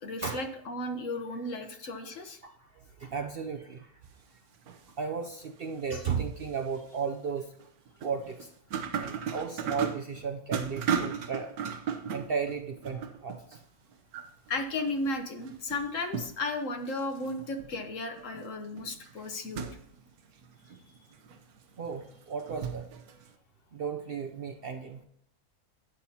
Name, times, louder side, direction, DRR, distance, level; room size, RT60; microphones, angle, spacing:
voice 1, 0.0-2.4 14.5-19.7, left 2 dB, 60° left, 6 dB, 1.4 m, -34 dB
voice 2, 2.4-3.9 5.0-7.5 8.0-8.5 9.0-11.5 12.1-13.6 21.8-22.9 23.7-25.0, right 5 dB, 55° right, 5 dB, 0.7 m, -35 dB
sound 1, 4.5-5.1 5.6-5.7 6.4-6.9 7.5-13.6 13.9-15.1 15.4-16.5 16.9-23.3, right 7 dB, 80° right, 1.3 m, -37 dB
12.0 x 8.9 x 2.8 m, 0.70 s
omnidirectional pair, 1.6 m